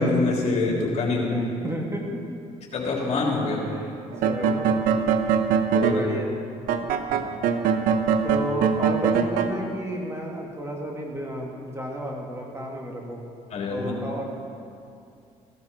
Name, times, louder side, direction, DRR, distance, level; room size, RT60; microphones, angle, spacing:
voice 1, 0.0-1.3 2.7-3.7 5.7-6.1 7.1-7.4 13.5-13.9, left 2 dB, 50° left, -2 dB, 3.4 m, -25 dB
voice 2, 1.1-2.4 3.7-3.9 4.2-4.7 5.8-6.4 8.2-13.2 13.7-14.2, equal, 20° right, -1 dB, 2.3 m, -32 dB
sound 1, 4.1-6.0 6.7-9.5, right 6 dB, 75° right, 0.9 m, -22 dB
15.5 x 12.5 x 4.5 m, 2.5 s
supercardioid pair, 75°, 15 cm